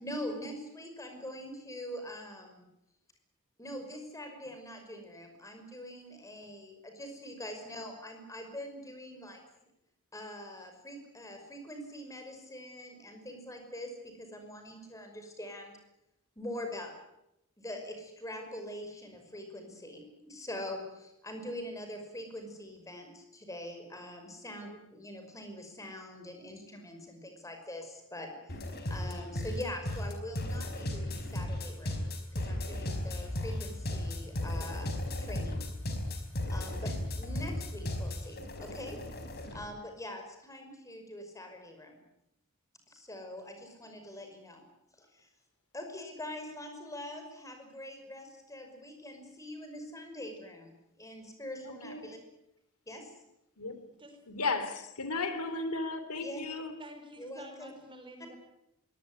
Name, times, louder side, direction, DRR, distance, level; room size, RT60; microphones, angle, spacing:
voice 1, 0.0-2.7 3.6-9.4 10.1-15.7 16.4-16.9 17.6-28.6 28.9-32.0 32.3-34.9 35.2-35.6 36.5-39.0 39.5-42.0 42.9-44.6 45.0-45.3 45.7-52.2 52.9-53.1 56.2-56.4 57.2-57.7, left 1 dB, 15° left, 5 dB, 5.7 m, -43 dB
sound 1, 28.5-39.6, left 1 dB, 45° left, 4.7 m, -35 dB
voice 2, 54.3-56.7, left 3 dB, 90° left, 11 dB, 3.2 m, -34 dB
voice 3, 56.8-58.4, right 1 dB, 25° right, 7 dB, 4.5 m, -50 dB
22.5 x 18.5 x 10.0 m, 0.83 s
head